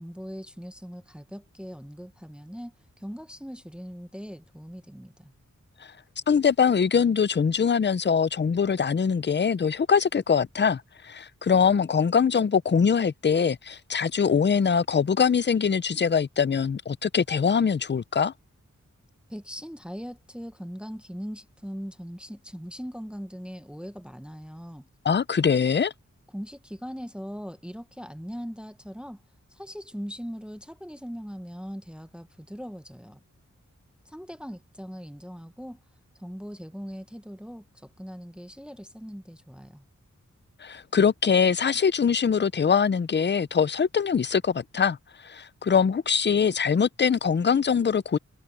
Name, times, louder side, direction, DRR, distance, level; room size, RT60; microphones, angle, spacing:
voice 1, 0.0-5.3 19.3-24.9 26.3-29.2 29.5-33.2 34.0-35.8 36.2-39.8, equal, 5° right, 0.9 m, -40 dB
voice 2, 6.3-18.3 25.0-25.9 40.6-45.0 45.2-48.2, left 6 dB, 35° left, 0.5 m, -23 dB
wide cardioid pair, 85°, 30 cm